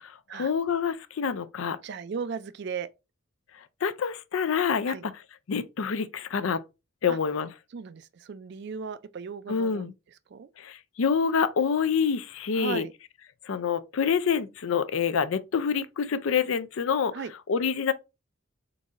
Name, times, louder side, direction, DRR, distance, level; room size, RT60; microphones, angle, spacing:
voice 1, 0.0-1.8 3.8-5.1 5.5-6.6 7.0-7.5 9.5-9.9 10.6-12.9 13.5-17.9, left 6 dB, 70° left, 0.4 m, -27 dB
voice 2, 1.8-2.9 4.9-5.0 7.1-7.2 7.7-9.9 10.3-10.5 12.5-12.9 17.1-17.3, right 6 dB, 50° right, 0.3 m, -36 dB
3.9 x 3.9 x 2.4 m
head